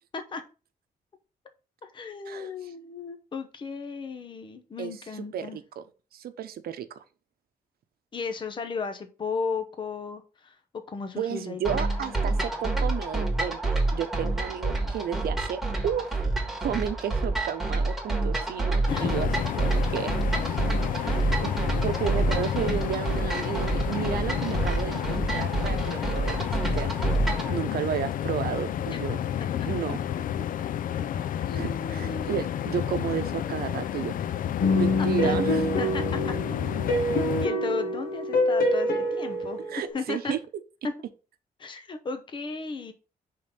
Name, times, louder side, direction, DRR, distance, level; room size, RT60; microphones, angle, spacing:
voice 1, 1.8-5.6 8.1-10.6 10.9-12.2 18.9-19.1 21.0-21.5 28.9-29.0 29.4-29.7 31.4-32.3 35.0-35.4 35.8-36.4 37.1-40.3 41.6-42.9, left 4 dB, 30° left, 0.7 m, -35 dB
voice 2, 4.8-5.8 6.1-6.9 11.2-16.3 16.6-19.3 19.6-20.1 20.5-20.6 21.4-26.9 27.5-29.2 29.7-30.0 31.5-34.1 34.7-35.6 39.7-40.4, right 9 dB, 85° right, 0.7 m, -32 dB
sound 1, 11.6-27.5, right 2 dB, ahead, 1.6 m, -28 dB
sound 2, 18.9-37.5, left 10 dB, 65° left, 0.4 m, -30 dB
sound 3, 34.6-39.9, left 1 dB, 80° left, 1.4 m, -26 dB
5.2 x 3.8 x 5.6 m
wide cardioid pair, 155°, 15 cm